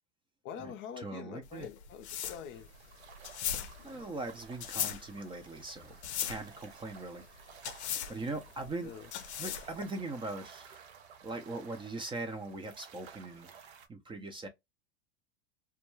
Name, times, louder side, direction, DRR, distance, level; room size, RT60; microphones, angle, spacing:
voice 1, 0.4-2.7 8.0-8.4 8.8-9.1, left 7 dB, 40° left, 0.5 m, -45 dB
voice 2, 1.0-1.7 3.8-7.2 8.1-8.9 9.4-10.9 11.2-13.6 13.9-14.5, right 2 dB, 15° right, 0.5 m, -40 dB
sound 1, 1.4-9.8, left 10 dB, 85° left, 0.5 m, -39 dB
sound 2, 2.5-13.9, right 7 dB, 80° right, 0.6 m, -55 dB
2.3 x 2.1 x 3.0 m
hypercardioid pair, 100°, 32 cm